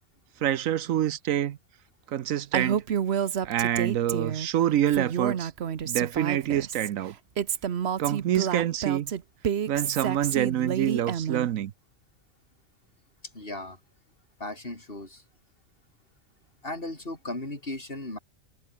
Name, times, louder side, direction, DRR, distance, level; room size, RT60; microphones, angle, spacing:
voice 1, 0.4-1.6 2.1-2.8 3.4-5.5 5.8-7.1 8.0-9.1 9.7-11.7, right 11 dB, 80° right, 1.2 m, -26 dB
Female speech woman speaking, 2.5-4.5 4.9-6.9 7.4-11.5, right 8 dB, 55° right, 1.1 m, -29 dB
voice 2, 13.3-13.8 14.4-15.2 16.6-18.2, left 2 dB, 45° left, 5.1 m, -36 dB
omnidirectional pair, 1.4 m